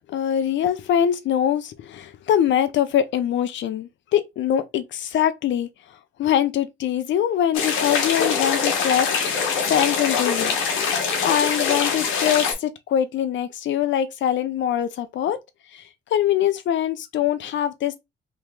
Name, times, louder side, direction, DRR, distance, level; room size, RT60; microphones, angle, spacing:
voice 1, 0.1-5.7 6.2-10.6 11.2-15.4 15.7-15.8 16.1-17.9, left 10 dB, 70° left, 0.7 m, -23 dB
sound 1, 7.5-12.5, left 5 dB, 90° left, 1.1 m, -23 dB
3.0 x 2.9 x 3.5 m
cardioid pair, 90°, 20 cm